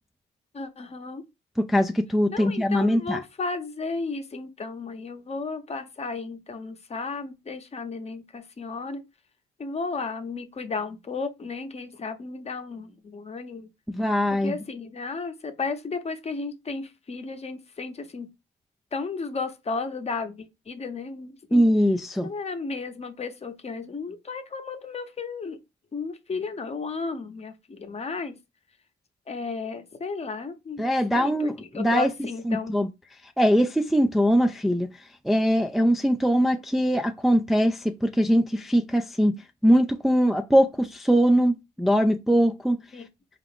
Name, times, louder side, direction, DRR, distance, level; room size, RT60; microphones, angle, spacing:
voice 1, 0.5-1.2 2.3-9.0 9.6-13.7 14.4-18.3 18.9-21.6 22.2-25.6 25.9-28.3 29.3-30.8 31.1-32.8 42.9-43.1, left 4 dB, 30° left, 0.8 m, -34 dB
voice 2, 1.6-3.2 13.9-14.5 21.5-22.3 30.8-32.1 32.5-32.9 33.4-34.9 35.2-39.3 39.6-42.8, equal, ahead, 0.3 m, -22 dB
4.5 x 2.5 x 3.5 m
cardioid pair, 90°, 20 cm